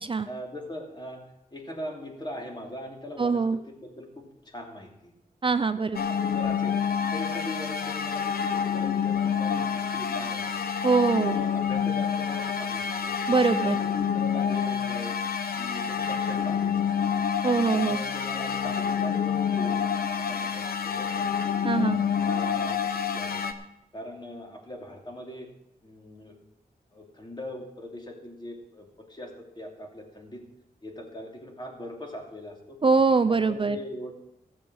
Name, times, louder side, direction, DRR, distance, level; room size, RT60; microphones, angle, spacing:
voice 1, 0.2-1.2 1.5-5.1 6.1-6.8 7.1-10.5 11.1-13.2 13.5-15.1 15.6-17.3 17.7-21.3 21.7-23.4 23.9-25.5 25.8-26.4 26.9-30.4 30.8-32.8 33.3-34.1, left 1 dB, 30° left, 0 dB, 2.9 m, -40 dB
voice 2, 3.2-3.6 5.4-6.0 10.8-11.3 13.3-13.8 17.4-18.0 21.6-22.0 32.8-33.8, right 4 dB, 35° right, 10 dB, 0.5 m, -23 dB
sound 1, 5.9-23.5, left 7 dB, 75° left, 0.8 m, -28 dB
15.0 x 7.4 x 6.4 m, 0.86 s
wide cardioid pair, 90°, 16 cm